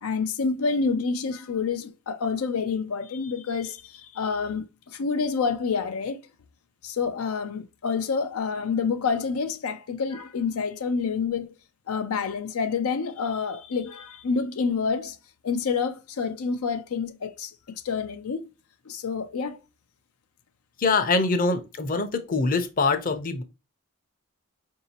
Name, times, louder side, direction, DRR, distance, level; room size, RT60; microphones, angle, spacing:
voice 1, 0.0-6.2 6.8-11.5 11.9-15.2 15.4-18.5 18.9-19.6, left 5 dB, 90° left, 0.5 m, -28 dB
voice 2, 20.8-23.4, left 3 dB, 40° left, 0.6 m, -24 dB
4.7 x 2.7 x 2.8 m
head